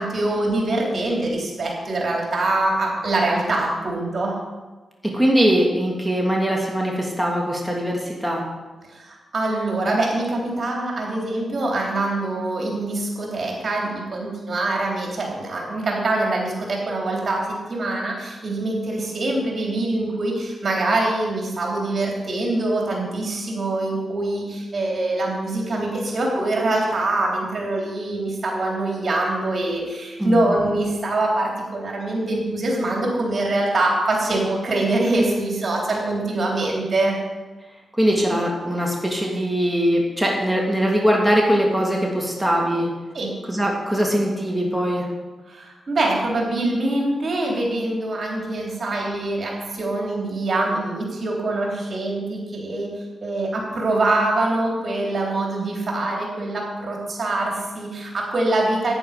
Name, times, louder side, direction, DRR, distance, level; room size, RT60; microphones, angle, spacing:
voice 1, 0.0-4.3 8.9-37.1 43.1-43.3 45.5-52.9 53.2-58.9, right 2 dB, 55° right, -1 dB, 3.4 m, -24 dB
voice 2, 5.0-8.4 30.2-30.4 38.0-42.9 43.5-45.1, equal, ahead, -2 dB, 2.7 m, -21 dB
10.0 x 9.4 x 5.1 m, 1.2 s
cardioid pair, 50°, 0 cm